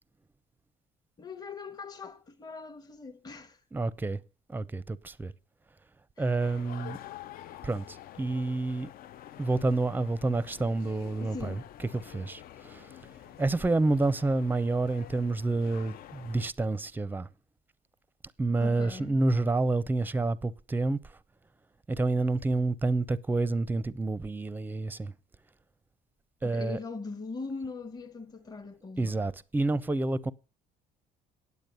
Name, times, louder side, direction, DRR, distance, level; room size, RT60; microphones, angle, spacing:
voice 1, 1.2-3.6 6.2-6.5 11.2-11.7 18.6-19.2 26.4-29.2, left 4 dB, 25° left, 1.0 m, -41 dB
voice 2, 3.7-4.2 4.5-5.3 6.2-7.0 7.6-8.9 9.4-11.6 12.0-12.9 13.4-17.3 18.4-21.0 21.9-25.1 26.4-26.8 29.0-30.3, right 2 dB, 10° right, 0.5 m, -28 dB
sound 1, 6.4-16.5, left 12 dB, 60° left, 0.5 m, -48 dB
9.1 x 8.3 x 6.8 m
cardioid pair, 110°, 17 cm